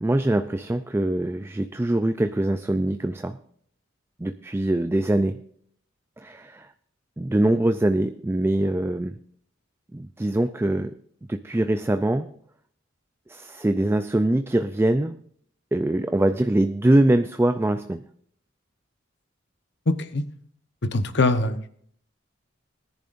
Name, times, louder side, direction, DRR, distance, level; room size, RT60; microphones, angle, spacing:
voice 1, 0.0-3.4 4.2-5.4 6.2-6.7 7.2-9.1 9.9-10.9 11.3-12.3 13.3-15.2 15.7-18.0, right 1 dB, 15° right, 9 dB, 0.4 m, -23 dB
voice 2, 19.9-20.2 20.8-21.7, left 2 dB, 60° left, 10 dB, 1.0 m, -23 dB
20.0 x 10.5 x 2.6 m, 0.63 s
head